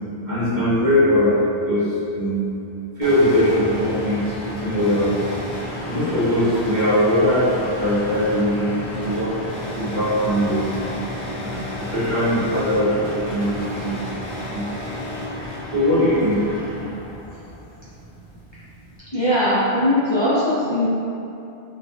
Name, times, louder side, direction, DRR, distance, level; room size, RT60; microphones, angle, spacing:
voice 1, 0.3-1.3 1.7-2.4 3.0-5.3 5.9-9.4 9.8-10.6 11.3-14.0 14.5-14.9 15.7-16.3, left 1 dB, 45° right, -11 dB, 1.2 m, -21 dB
sound 1, 3.0-19.0, left 1 dB, 80° left, 1.1 m, -32 dB
voice 2, 19.1-20.9, left 1 dB, 30° left, -12 dB, 0.7 m, -20 dB
5.6 x 2.5 x 2.4 m, 2.7 s
omnidirectional pair, 1.1 m